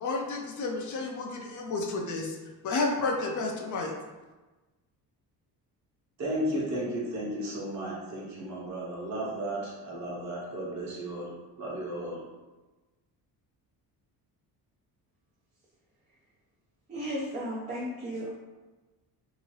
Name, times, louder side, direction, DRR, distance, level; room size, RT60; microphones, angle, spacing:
voice 1, 0.0-2.4 2.6-3.9, left 3 dB, 50° left, 1 dB, 0.5 m, -31 dB
voice 2, 6.2-12.2, right 1 dB, 45° right, -5 dB, 1.1 m, -34 dB
voice 3, 16.9-18.3, equal, 20° right, -5 dB, 0.4 m, -34 dB
2.8 x 2.6 x 3.0 m, 1.2 s
cardioid pair, 135°, 40 cm